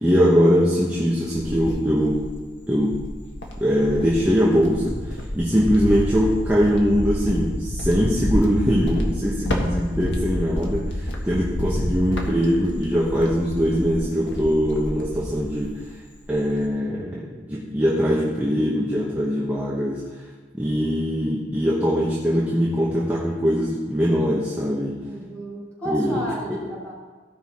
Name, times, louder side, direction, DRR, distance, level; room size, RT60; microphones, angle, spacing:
voice 1, 0.0-2.3 2.7-3.0 3.6-15.8 16.3-20.0 20.6-25.0 25.9-26.2 26.5-26.6, equal, 10° right, -6 dB, 1.0 m, -22 dB
Cricket, 0.9-2.4 2.9-15.8 16.1-16.7, equal, 75° left, 1.4 m, -29 dB
voice 2, 25.0-26.9, right 1 dB, 10° left, -7 dB, 3.1 m, -32 dB
15.5 x 5.6 x 4.3 m, 1.4 s
head